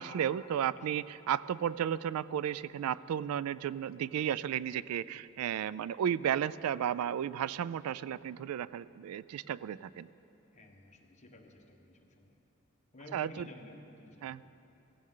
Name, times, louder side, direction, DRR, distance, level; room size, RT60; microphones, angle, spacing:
voice 1, 0.0-10.1 13.1-13.5 14.2-14.4, right 9 dB, 85° right, 17 dB, 0.3 m, -33 dB
voice 2, 10.5-12.4 12.9-14.4, left 1 dB, 35° left, 1 dB, 1.2 m, -53 dB
17.0 x 15.5 x 3.8 m, 2.9 s
head